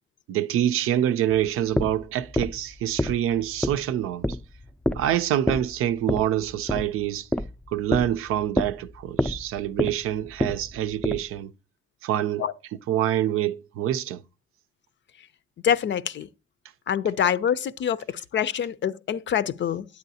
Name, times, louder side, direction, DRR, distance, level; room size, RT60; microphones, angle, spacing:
voice 1, 0.3-4.3 4.9-7.3 7.7-11.5 12.0-12.4 12.9-14.2, right 11 dB, 90° right, 0.5 m, -26 dB
sound 1, 1.5-11.4, left 1 dB, 5° left, 0.4 m, -29 dB
voice 2, 15.6-16.3 16.9-19.9, left 9 dB, 60° left, 0.5 m, -25 dB
9.5 x 8.1 x 2.7 m
cardioid pair, 70°, 21 cm